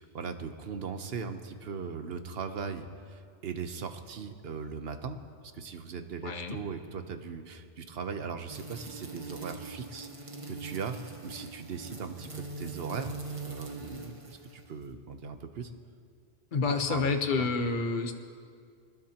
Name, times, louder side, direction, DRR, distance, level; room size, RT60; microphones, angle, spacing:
voice 1, 0.0-5.2 5.5-13.1 13.5-15.7 16.7-17.0 17.3-17.5, right 5 dB, 65° right, 7 dB, 1.1 m, -39 dB
voice 2, 6.2-6.6 16.5-18.1, left 4 dB, 50° left, 5 dB, 1.2 m, -29 dB
sound 1, 8.5-14.9, right 3 dB, 30° right, 1.2 m, -42 dB
22.5 x 20.5 x 2.9 m, 2.2 s
omnidirectional pair, 1.1 m